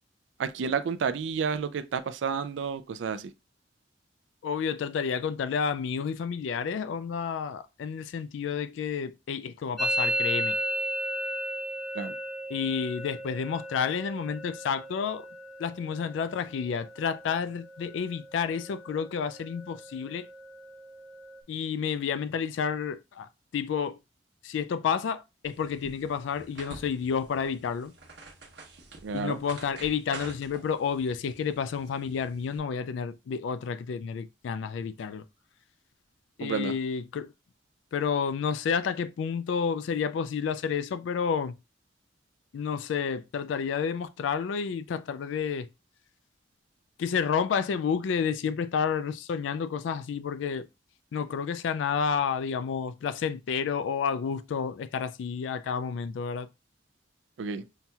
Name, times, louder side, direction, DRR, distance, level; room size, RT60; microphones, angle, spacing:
voice 1, 0.4-3.3 11.9-12.1 29.0-29.4 36.4-36.7 57.4-57.6, right 6 dB, 80° right, 0.4 m, -30 dB
voice 2, 4.4-10.6 12.5-15.3 15.6-20.3 21.5-24.0 24.4-27.9 29.1-35.2 36.4-37.3 37.9-41.5 42.5-45.7 47.0-50.7 51.1-56.5, left 6 dB, 85° left, 0.3 m, -30 dB
Musical instrument, 9.8-17.4 17.7-18.3 18.5-19.1 19.4-21.4, right 1 dB, ahead, 0.6 m, -35 dB
sound 1, 25.4-32.6, right 3 dB, 60° right, 1.0 m, -48 dB
5.7 x 2.8 x 2.3 m
head